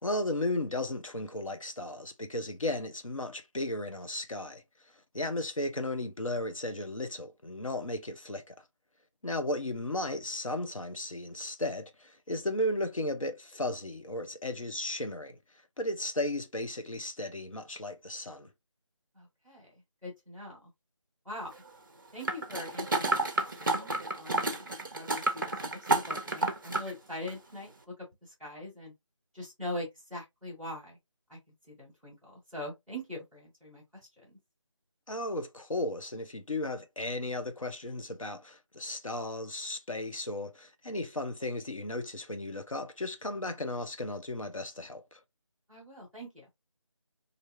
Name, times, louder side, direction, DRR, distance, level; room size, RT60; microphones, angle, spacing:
voice 1, 0.0-4.6 5.1-8.6 9.2-15.4 15.8-18.5 35.1-45.2, left 1 dB, 90° left, 0.9 m, -35 dB
voice 2, 19.1-20.7 21.2-21.5 22.1-24.7 24.9-27.9 28.2-28.9 29.3-31.0 31.3-31.4 31.7-33.8 34.2-34.3 45.7-46.5, left 1 dB, ahead, 1.0 m, -42 dB
sound 1, 22.2-26.9 27.3-27.4, right 2 dB, 40° right, 0.6 m, -30 dB
3.3 x 2.7 x 2.7 m
figure-of-eight pair, 165°, 17 cm